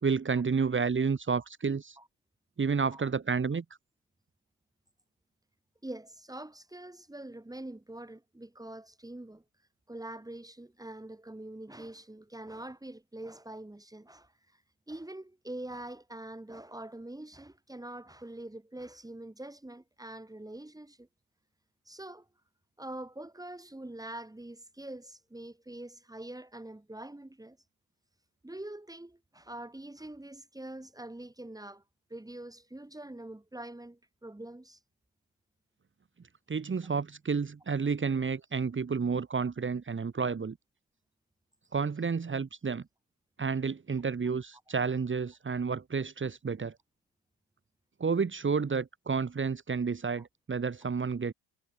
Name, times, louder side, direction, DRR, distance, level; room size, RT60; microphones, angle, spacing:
voice 1, 0.0-2.0 2.6-3.6 36.5-40.6 41.7-42.8 43.4-46.7 48.0-51.3, right 5 dB, 25° right, 3.3 m, -30 dB
voice 2, 5.8-9.4 9.9-14.6 14.9-21.1 21.9-22.3 22.8-27.6 28.4-31.8 32.1-34.8 50.2-50.3, right 1 dB, 10° right, 5.9 m, -44 dB
supercardioid pair, 90°, 46 cm